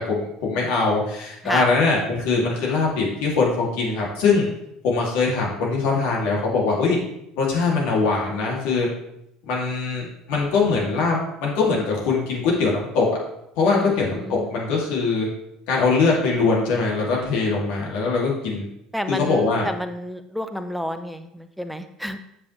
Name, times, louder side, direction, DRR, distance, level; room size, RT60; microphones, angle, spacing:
voice 1, 0.0-4.5 4.8-7.0 7.4-8.9 9.4-13.1 13.6-15.3 15.7-18.6 19.1-19.7, left 4 dB, 60° left, -3 dB, 2.6 m, -22 dB
voice 2, 1.4-1.7 13.7-14.4 18.9-22.2, equal, ahead, 9 dB, 0.7 m, -30 dB
8.5 x 6.9 x 3.3 m, 0.80 s
figure-of-eight pair, 65°, 3 cm